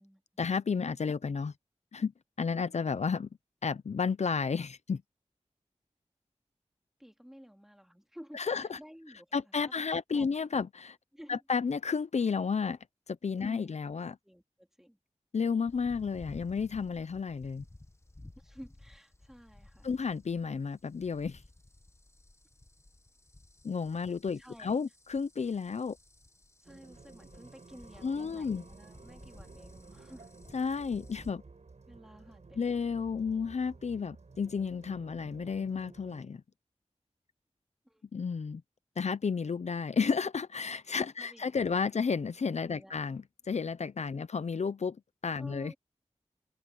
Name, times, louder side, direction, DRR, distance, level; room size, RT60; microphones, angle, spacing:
voice 1, 0.4-1.5 1.9-2.1 2.4-3.3 3.6-5.0 8.3-8.8 9.3-11.0 11.3-12.8 13.1-14.2 15.3-17.6 19.8-21.4 23.6-26.0 28.0-28.6 30.5-31.4 32.6-36.4 38.1-38.6 39.0-45.0 45.2-45.7, left 5 dB, 70° left, 0.6 m, -32 dB
voice 2, 7.0-9.7 10.1-10.3 11.1-11.4 13.4-15.0 18.4-20.0 24.4-24.8 26.6-30.3 31.8-32.9 37.8-38.0 41.2-41.5 42.7-43.1 44.1-44.3 45.3-45.8, equal, 5° right, 2.7 m, -53 dB
sound 1, 15.7-31.3, left 2 dB, 20° left, 1.3 m, -55 dB
sound 2, 26.7-36.2, right 4 dB, 70° right, 6.5 m, -54 dB
wide cardioid pair, 50°, 12 cm